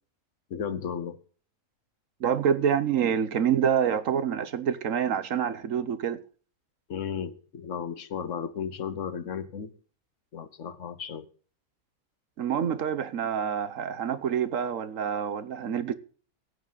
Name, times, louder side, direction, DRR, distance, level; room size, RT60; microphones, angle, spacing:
voice 1, 0.5-1.2 6.9-9.7 10.3-11.3, left 7 dB, 60° left, 1.3 m, -34 dB
voice 2, 2.2-6.2 12.4-15.9, right 8 dB, 65° right, 1.2 m, -27 dB
15.5 x 9.9 x 4.0 m
omnidirectional pair, 1.5 m